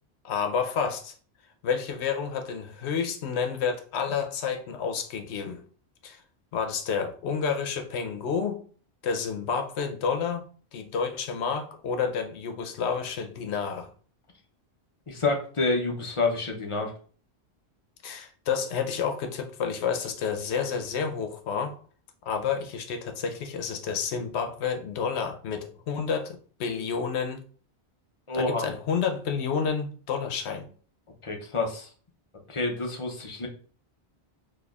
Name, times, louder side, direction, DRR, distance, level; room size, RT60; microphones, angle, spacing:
voice 1, 0.2-1.1 1.6-5.6 6.0-6.2 6.5-8.6 9.0-10.4 10.7-13.9 18.0-21.8 22.3-27.4 28.3-30.7, left 6 dB, 85° left, 0.9 m, -30 dB
voice 2, 15.1-16.9 28.3-28.6 31.2-31.9 32.5-33.5, left 3 dB, 35° left, 0.6 m, -28 dB
4.1 x 2.8 x 2.3 m
omnidirectional pair, 1.1 m